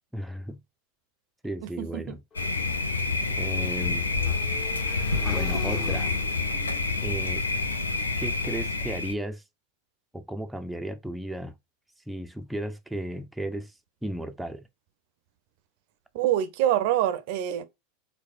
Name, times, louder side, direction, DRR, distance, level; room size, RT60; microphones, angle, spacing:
voice 1, 0.1-0.6 1.4-2.2 3.4-4.1 5.3-6.1 7.0-7.4 8.2-9.4 10.1-11.6 12.1-13.7 14.0-14.7, right 1 dB, 5° right, 0.4 m, -34 dB
voice 2, 1.6-2.2 16.1-17.6, right 12 dB, 55° right, 0.5 m, -26 dB
Motorcycle / Engine, 2.3-8.4, left 5 dB, 30° left, 1.1 m, -44 dB
Thunder, 2.4-9.1, left 3 dB, 85° left, 0.4 m, -28 dB
4.7 x 2.1 x 2.4 m
figure-of-eight pair, 85°, 0 cm